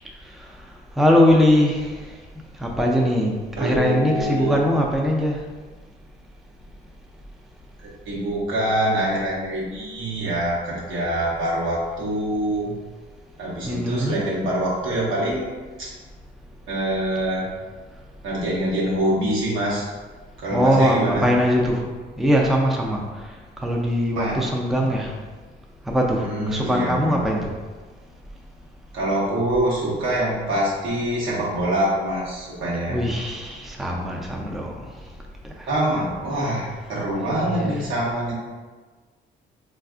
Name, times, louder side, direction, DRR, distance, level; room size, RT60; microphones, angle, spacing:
voice 1, 1.0-2.2 2.6-5.4 13.7-14.2 20.5-21.9 22.2-23.3 23.6-25.1 25.9-27.5 32.9-34.8 35.6-35.7 36.4-36.5 37.3-37.9, equal, ahead, -1 dB, 0.4 m, -21 dB
voice 2, 3.6-4.6 8.0-12.8 13.4-15.5 15.8-15.9 16.7-17.4 18.2-19.9 20.4-21.3 24.1-24.4 24.7-24.9 26.2-27.3 28.9-33.1 35.7-38.3, right 1 dB, 80° right, -6 dB, 1.0 m, -25 dB
3.4 x 2.4 x 2.4 m, 1.3 s
cardioid pair, 90°, 20 cm